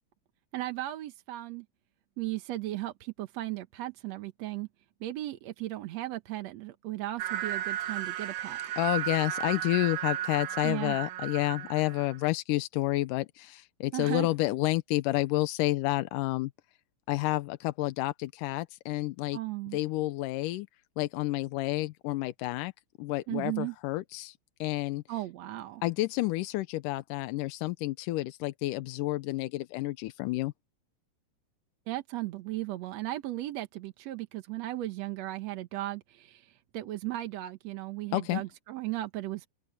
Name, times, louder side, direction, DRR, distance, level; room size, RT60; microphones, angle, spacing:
voice 1, 0.5-1.7 2.2-4.7 5.0-8.6 10.6-11.0 13.9-14.3 19.3-19.8 23.3-23.7 25.1-25.8 31.9-39.5, right 16 dB, 65° right, 1.8 m, -36 dB
sound 1, 7.2-12.3, right 12 dB, 80° right, 2.8 m, -34 dB
voice 2, 8.8-16.5 17.1-19.4 19.7-20.7 21.0-22.7 23.0-25.0 25.8-30.5 38.1-38.4, left 18 dB, 80° left, 2.1 m, -30 dB
open air
omnidirectional pair, 4.0 m